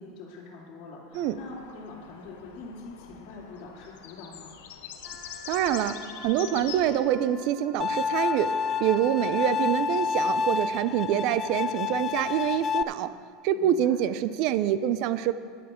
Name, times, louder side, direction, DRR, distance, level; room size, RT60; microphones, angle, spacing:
voice 1, 0.0-4.6 13.5-14.0, left 3 dB, 50° left, -7 dB, 2.4 m, -44 dB
sound 1, 1.1-7.0, left 8 dB, 80° left, 1.0 m, -44 dB
Wind instrument woodwind instrument, 5.0-9.6, left 2 dB, 10° left, 2.9 m, -46 dB
voice 2, 5.5-6.0 6.2-8.5 8.8-13.1 13.4-15.3, right 11 dB, 60° right, 13 dB, 0.5 m, -26 dB
Bowed string instrument, 7.8-12.8, left 6 dB, 35° left, 0.3 m, -28 dB
13.5 x 10.5 x 3.7 m, 2.1 s
supercardioid pair, 115°, 0 cm